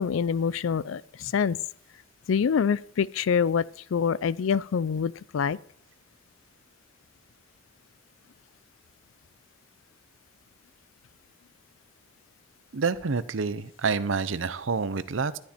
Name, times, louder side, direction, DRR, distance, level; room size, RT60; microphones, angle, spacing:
voice 1, 0.0-1.6 2.3-3.6 3.9-5.6, left 6 dB, 85° left, 0.4 m, -25 dB
voice 2, 12.7-15.4, right 5 dB, 80° right, 0.7 m, -28 dB
12.0 x 10.5 x 4.4 m
head